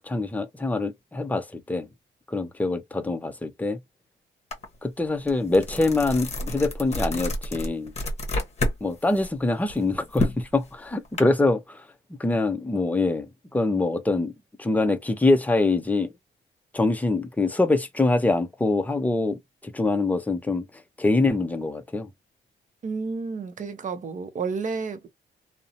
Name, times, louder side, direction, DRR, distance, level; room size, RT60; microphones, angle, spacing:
voice 1, 0.0-1.9 2.3-3.8 4.8-7.9 8.8-11.9 12.2-14.3 14.6-16.1 16.7-22.1, left 2 dB, 10° left, 0.5 m, -24 dB
sound 1, 4.5-4.6 5.0-8.8 9.1-11.2, left 1 dB, 35° left, 0.9 m, -29 dB
voice 2, 22.8-25.1, right 4 dB, 40° right, 0.7 m, -31 dB
2.6 x 2.1 x 2.6 m
cardioid pair, 90°, 20 cm